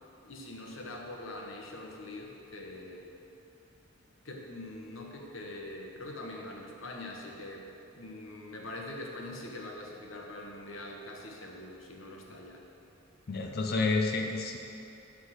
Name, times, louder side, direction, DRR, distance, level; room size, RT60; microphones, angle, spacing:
voice 1, 0.2-3.2 4.2-12.6, left 1 dB, 80° left, 0 dB, 1.1 m, -43 dB
voice 2, 13.3-14.6, left 3 dB, 55° left, 3 dB, 0.6 m, -29 dB
9.7 x 3.7 x 6.3 m, 2.8 s
head